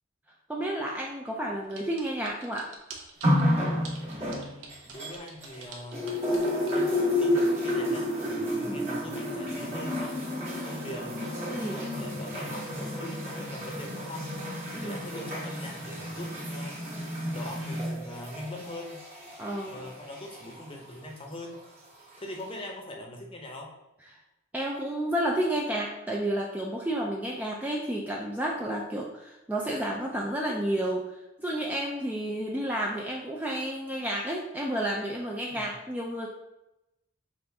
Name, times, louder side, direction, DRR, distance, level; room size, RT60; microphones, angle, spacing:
voice 1, 0.5-2.7 8.6-8.9 11.5-11.8 14.7-15.0 19.4-19.9 24.5-36.3, right 1 dB, 10° right, -2 dB, 0.3 m, -31 dB
sound 1, 1.7-3.4 3.9-6.8, right 5 dB, 70° right, 0.8 m, -46 dB
sound 2, 3.2-5.6 5.9-20.6 21.5-21.6, left 1 dB, 30° right, 1.2 m, -31 dB
voice 2, 3.9-6.1 6.7-11.1 11.6-14.4 14.7-19.0 19.7-21.6 22.2-23.7 35.5-35.7, left 1 dB, 25° left, 0 dB, 0.7 m, -42 dB
5.4 x 2.5 x 3.4 m, 0.94 s
head